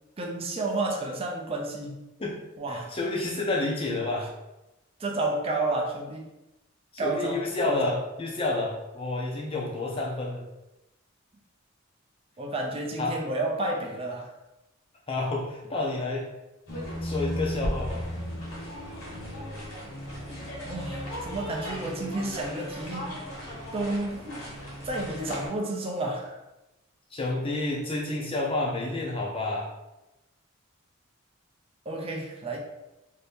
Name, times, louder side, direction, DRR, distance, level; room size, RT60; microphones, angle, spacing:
voice 1, 0.2-2.0 2.6-2.9 5.0-6.3 7.0-8.0 12.4-14.3 20.6-23.3 23.7-24.2 24.8-26.4 31.9-32.6, right 2 dB, 25° right, 0 dB, 0.5 m, -31 dB
voice 2, 2.7-4.3 6.9-10.4 13.0-13.2 15.1-16.2 17.0-18.0 27.1-29.7, left 2 dB, 25° left, -2 dB, 0.5 m, -29 dB
sound 1, 16.7-25.5, equal, 65° left, 1.2 m, -35 dB
2.7 x 2.6 x 3.5 m, 0.97 s
head